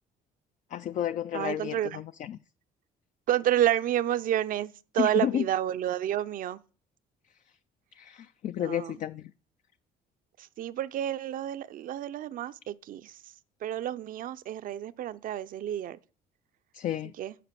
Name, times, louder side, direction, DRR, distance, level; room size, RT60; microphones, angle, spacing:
voice 1, 0.7-2.4 5.0-5.5 8.0-9.3 16.7-17.1, left 10 dB, 50° left, 0.4 m, -31 dB
voice 2, 1.3-2.0 3.3-6.6 8.6-8.9 10.4-13.2 13.6-16.0 17.2-17.3, right 11 dB, 55° right, 0.5 m, -30 dB
8.4 x 5.1 x 6.8 m
cardioid pair, 110°, 17 cm